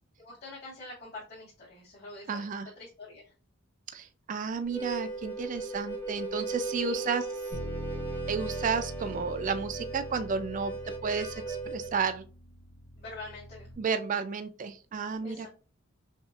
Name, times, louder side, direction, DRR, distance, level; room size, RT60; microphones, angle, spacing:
voice 1, 0.2-2.5 2.8-3.3 6.8-7.1 13.0-13.7 15.2-15.5, left 2 dB, 50° left, -9 dB, 1.8 m, -45 dB
voice 2, 2.3-2.7 3.9-7.3 8.3-10.7 11.0-12.2 13.8-15.5, right 5 dB, 40° right, 10 dB, 0.3 m, -32 dB
Harmonica, 4.6-12.0, right 3 dB, 10° left, 0.7 m, -37 dB
Bass guitar, 7.5-13.8, equal, 75° left, 1.1 m, -42 dB
5.5 x 2.4 x 2.3 m, 0.36 s
head